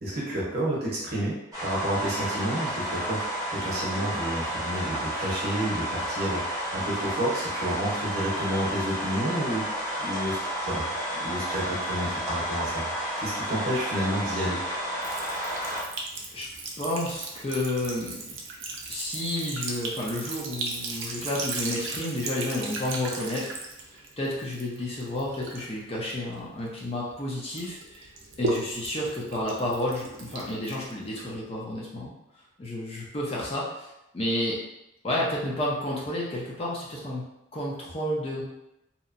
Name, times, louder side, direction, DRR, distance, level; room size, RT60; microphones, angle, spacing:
voice 1, 0.0-3.2 3.5-6.4 6.7-10.4 10.6-10.8 11.2-12.9 13.2-14.6, right 1 dB, 50° right, -5 dB, 0.8 m, -30 dB
sound 1, 1.5-15.8, equal, 20° right, 0.7 m, -31 dB
Sink (filling or washing) / Trickle dribble, 15.0-27.1 27.5-31.4, right 3 dB, 70° right, 0.5 m, -37 dB
voice 2, 16.8-18.4 18.9-23.5 23.9-28.1 28.4-32.1 32.6-33.9 34.1-34.6 35.0-37.2 37.5-38.4, left 1 dB, 30° left, -4 dB, 0.5 m, -31 dB
2.8 x 2.1 x 2.5 m, 0.88 s
head